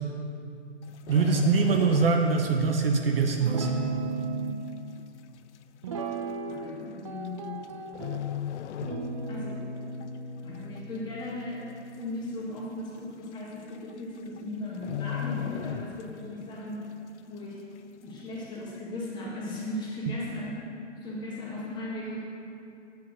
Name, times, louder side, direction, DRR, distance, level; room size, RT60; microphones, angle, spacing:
sound 1, 0.8-2.6 2.8-3.1 3.7-3.8 4.7-4.8 5.0-5.1 5.9-6.1 7.2-7.6 7.9-9.5 9.8-10.1 10.5-11.1 11.4-11.5 11.7-11.8 12.3-12.4 13.3-13.4 13.7-14.0 14.3-14.4 14.8-16.4 16.8-16.9, left 10 dB, 70° left, 0.5 m, -34 dB
voice 1, 1.1-3.7, right 5 dB, 50° right, 3 dB, 0.8 m, -23 dB
Guitar, 3.4-4.6 5.8-6.8 7.1-8.2 8.8-12.3, right 4 dB, 25° right, 0.4 m, -35 dB
voice 2, 6.5-7.6 9.3-9.6 10.4-11.7 12.0-16.9 17.3-17.6 18.0-20.6 21.0-22.2, left 1 dB, 10° left, -6 dB, 1.5 m, -37 dB
8.8 x 5.8 x 6.2 m, 2.5 s
hypercardioid pair, 145°, 37 cm